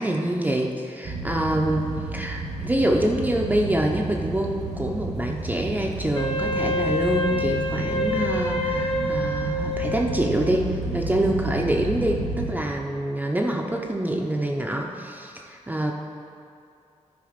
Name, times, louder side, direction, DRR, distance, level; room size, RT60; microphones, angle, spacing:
voice 1, 0.0-15.9, right 1 dB, 15° right, 0 dB, 0.6 m, -26 dB
sound 1, 1.0-12.5, right 3 dB, 85° right, 1.7 m, -31 dB
Wind instrument woodwind instrument, 6.1-10.4, left 2 dB, 45° left, 1.0 m, -27 dB
12.5 x 4.8 x 5.1 m, 2.4 s
wide cardioid pair, 135°, 12 cm